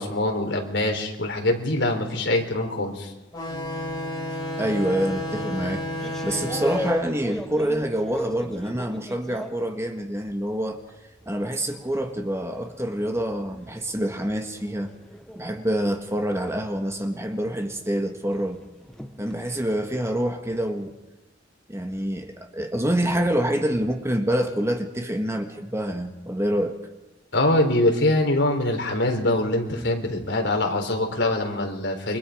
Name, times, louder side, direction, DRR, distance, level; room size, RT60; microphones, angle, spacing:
voice 1, 0.0-3.1 27.3-32.2, left 1 dB, 70° left, 3 dB, 4.0 m, -23 dB
sound 1, 3.3-8.5, left 1 dB, 20° left, 6.6 m, -32 dB
voice 2, 4.6-10.8 11.3-14.9 15.3-18.6 19.2-20.9 21.7-26.8, right 1 dB, 15° right, 4 dB, 1.7 m, -26 dB
sound 2, 5.3-10.5 10.9-19.8, equal, 5° left, 1.2 m, -38 dB
29.0 x 24.5 x 5.1 m, 0.98 s
head